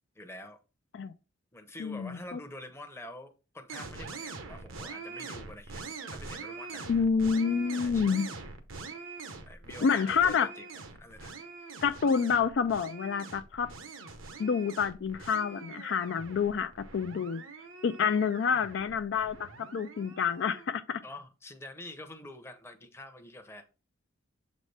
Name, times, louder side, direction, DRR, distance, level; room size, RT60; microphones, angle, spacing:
voice 1, 0.1-0.6 1.5-7.1 7.7-8.3 9.4-10.7 11.0-11.3 21.0-23.7, left 1 dB, 15° left, 0.7 m, -47 dB
voice 2, 1.8-2.4 6.9-8.3 9.8-10.5 11.8-13.7 14.4-17.4 17.8-21.0, left 6 dB, 60° left, 0.4 m, -28 dB
sound 1, 3.7-20.7, right 4 dB, 85° right, 1.0 m, -44 dB
7.3 x 4.1 x 3.3 m
head